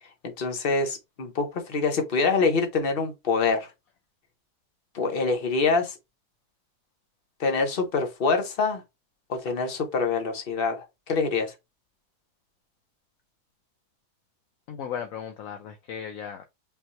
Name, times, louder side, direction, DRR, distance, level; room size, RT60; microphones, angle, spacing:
voice 1, 0.4-3.7 4.9-6.0 7.4-8.8 9.3-11.5, left 4 dB, 40° left, 1.2 m, -25 dB
voice 2, 14.7-16.4, left 8 dB, 65° left, 1.0 m, -36 dB
5.3 x 3.0 x 3.0 m
omnidirectional pair, 1.7 m